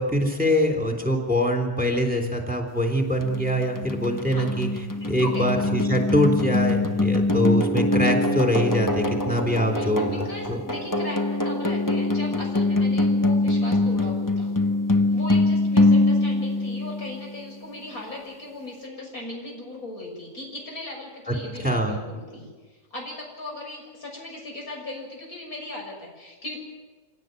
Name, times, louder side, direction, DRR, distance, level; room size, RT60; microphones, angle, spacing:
voice 1, 0.0-4.7 5.1-10.6 21.3-21.4 21.6-22.0, equal, 5° right, 4 dB, 3.6 m, -24 dB
sound 1, 3.2-17.4, left 2 dB, 15° left, 1.0 m, -23 dB
voice 2, 5.0-5.8 9.7-14.5 15.1-26.6, left 2 dB, 65° left, 0 dB, 7.2 m, -38 dB
27.0 x 17.0 x 9.3 m, 1.4 s
omnidirectional pair, 1.6 m